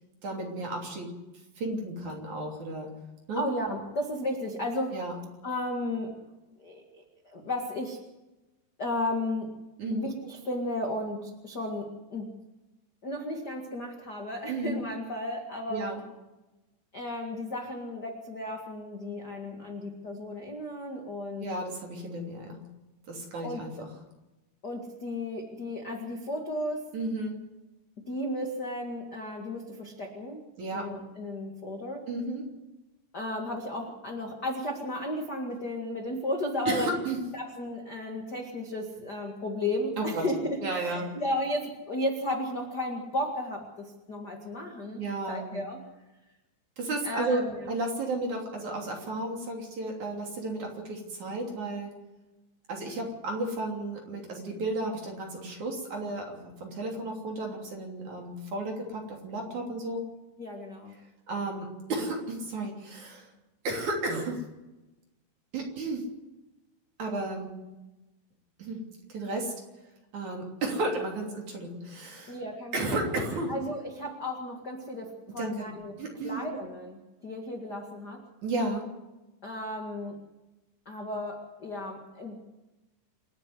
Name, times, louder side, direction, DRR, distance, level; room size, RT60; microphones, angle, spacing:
voice 1, 0.2-1.2 1.6-2.9 3.3-3.4 4.9-5.1 9.8-10.1 14.5-14.8 15.7-16.0 21.4-22.6 23.1-23.9 26.9-27.4 30.6-30.9 32.1-32.5 36.7-37.2 40.0-40.3 40.6-41.1 45.0-45.6 46.8-47.4 47.7-51.9 52.7-60.0 61.3-63.3 63.6-64.4 65.5-66.1 67.0-67.5 68.6-68.8 69.1-69.5 70.1-72.4 72.7-73.6 75.4-75.7 76.0-76.4 78.4-78.9, right 2 dB, 45° right, 1 dB, 4.0 m, -33 dB
voice 2, 3.3-5.0 5.4-6.1 6.6-6.8 7.2-8.0 8.8-9.5 9.9-12.3 13.0-15.9 16.9-21.5 23.4-23.6 24.6-26.9 28.1-30.5 30.7-32.0 33.1-36.9 37.3-45.0 45.3-45.8 47.0-47.6 60.4-60.9 72.3-72.9 73.5-75.9 76.2-78.2 79.4-80.2 80.8-82.4, left 1 dB, 55° left, 1 dB, 1.1 m, -34 dB
28.0 x 9.8 x 9.6 m, 1.0 s
omnidirectional pair, 5.5 m